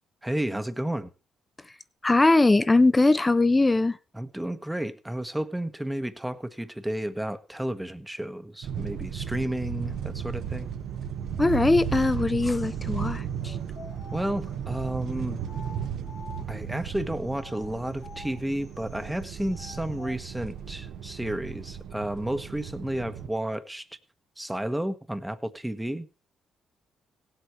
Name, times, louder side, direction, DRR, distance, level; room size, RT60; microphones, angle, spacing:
voice 1, 0.2-1.1 4.1-10.7 14.1-15.4 16.5-23.9 24.4-26.3, right 1 dB, 5° right, 1.3 m, -32 dB
voice 2, 2.0-4.0 11.4-13.5, left 2 dB, 20° left, 0.9 m, -21 dB
sound 1, 8.6-23.3, right 8 dB, 75° right, 1.3 m, -35 dB
sound 2, 13.4-16.8 17.3-20.2, left 4 dB, 60° left, 1.9 m, -48 dB
17.0 x 8.3 x 4.4 m
cardioid pair, 90°, 0 cm